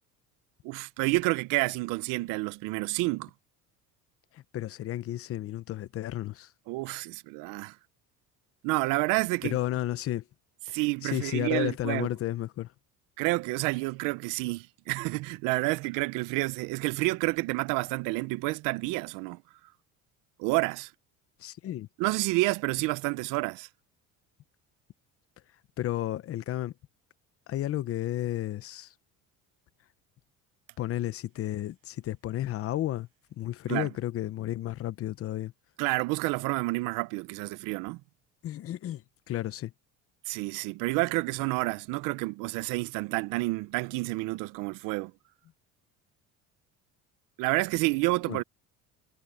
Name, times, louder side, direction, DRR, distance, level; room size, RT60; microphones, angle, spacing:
voice 1, 0.6-3.3 6.7-7.8 8.6-9.6 10.7-12.1 13.2-19.4 20.4-20.9 22.0-23.7 33.7-33.9 35.8-38.0 40.3-45.1 47.4-48.4, right 23 dB, 80° right, 0.8 m, -29 dB
voice 2, 4.3-6.5 9.4-10.2 10.7-12.7 21.4-21.9 25.8-26.7 27.5-28.9 30.8-33.1 33.4-35.5 38.4-39.7 48.3-48.4, left 13 dB, 45° left, 1.0 m, -32 dB
cardioid pair, 135°, 32 cm